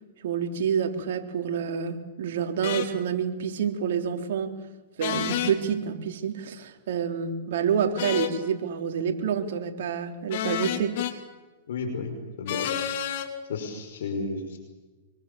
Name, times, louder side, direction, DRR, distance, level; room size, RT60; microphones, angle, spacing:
voice 1, 0.2-4.6 5.0-11.0, right 7 dB, 70° right, 4 dB, 3.6 m, -28 dB
sound 1, 2.6-2.9 5.0-5.5 8.0-8.4 10.3-11.1 12.5-13.3, left 11 dB, 60° left, 3.0 m, -29 dB
voice 2, 11.7-12.7 13.5-14.6, left 3 dB, 75° left, 4 dB, 5.8 m, -32 dB
26.0 x 24.0 x 7.1 m, 1.2 s
hypercardioid pair, 125°, 0 cm